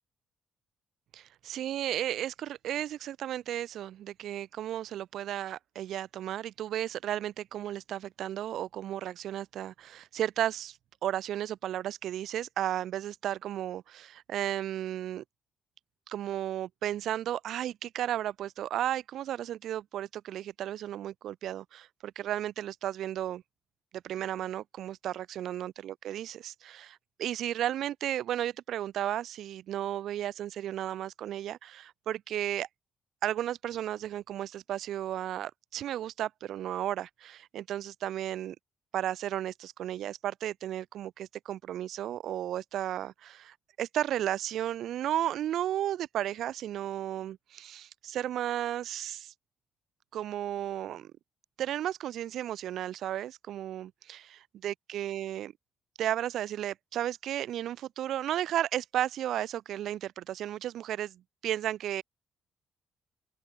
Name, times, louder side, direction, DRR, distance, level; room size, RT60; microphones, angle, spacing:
voice 1, 1.1-15.2 16.1-23.4 24.0-32.7 33.2-38.6 38.9-49.3 50.1-51.1 51.6-55.5 56.0-62.0, right 11 dB, 75° right, 0.5 m, -34 dB
open air
cardioid pair, 90°, 0 cm